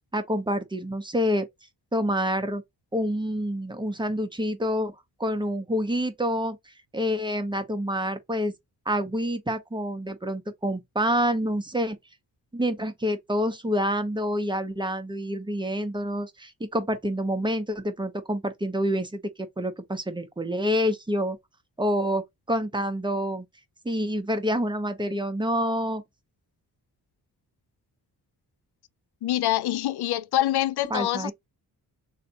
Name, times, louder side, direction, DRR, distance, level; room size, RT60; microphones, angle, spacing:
voice 1, 0.1-1.5 1.9-2.6 2.9-4.9 5.2-6.6 6.9-8.5 8.9-12.0 12.5-19.2 19.6-21.4 21.8-22.2 22.5-23.4 23.8-26.0 30.9-31.3, equal, 10° right, 1.0 m, -27 dB
voice 2, 29.2-31.3, left 14 dB, 75° left, 0.5 m, -25 dB
3.3 x 2.8 x 4.1 m
cardioid pair, 95°, 40 cm